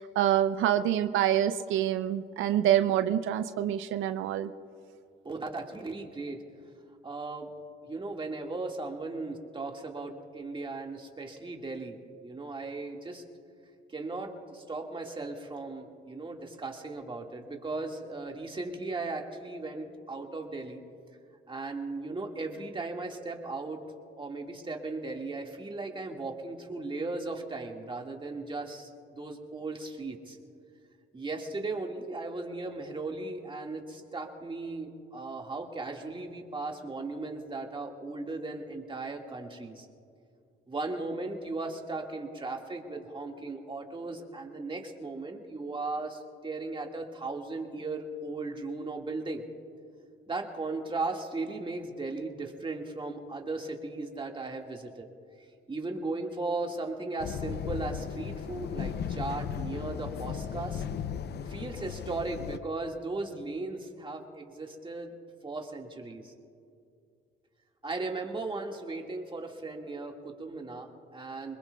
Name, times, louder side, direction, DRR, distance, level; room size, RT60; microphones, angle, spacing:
voice 1, 0.0-4.5, right 11 dB, 85° right, 10 dB, 0.5 m, -26 dB
voice 2, 5.3-6.4 7.0-7.5 7.9-13.2 13.9-20.8 21.5-23.8 24.2-30.4 31.1-39.9 40.7-49.4 50.3-55.1 55.7-60.8 61.5-65.1 65.4-66.3 67.8-71.6, right 3 dB, 25° right, 2 dB, 1.9 m, -37 dB
sound 1, 57.2-62.6, left 8 dB, 60° left, 0.6 m, -36 dB
24.5 x 21.5 x 2.3 m, 2.4 s
cardioid pair, 90°, 20 cm